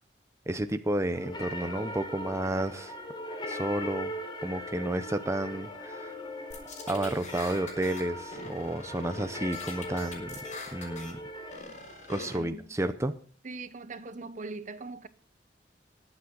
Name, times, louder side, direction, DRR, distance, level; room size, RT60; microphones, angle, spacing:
voice 1, 0.5-2.9 3.4-4.1 4.4-6.1 6.9-10.4 10.7-11.2 12.1-13.1, right 1 dB, 15° right, 0.7 m, -31 dB
sound 1, 1.1-11.6, left 1 dB, 30° left, 3.9 m, -39 dB
sound 2, 6.5-8.0 8.3-9.3 9.5-11.1 11.5-12.4, left 3 dB, 45° left, 5.7 m, -43 dB
voice 2, 12.3-12.7 13.4-15.1, right 3 dB, 45° right, 0.9 m, -40 dB
20.5 x 8.7 x 3.9 m
head